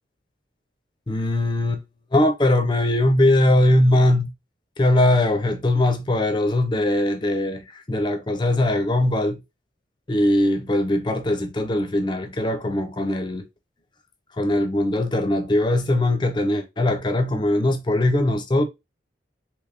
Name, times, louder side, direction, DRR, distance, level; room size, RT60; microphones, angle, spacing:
voice 1, 1.1-1.8 2.1-4.3 4.8-9.4 10.1-13.4 14.4-18.6, left 1 dB, 25° left, 0.4 m, -20 dB
3.3 x 3.0 x 2.5 m
head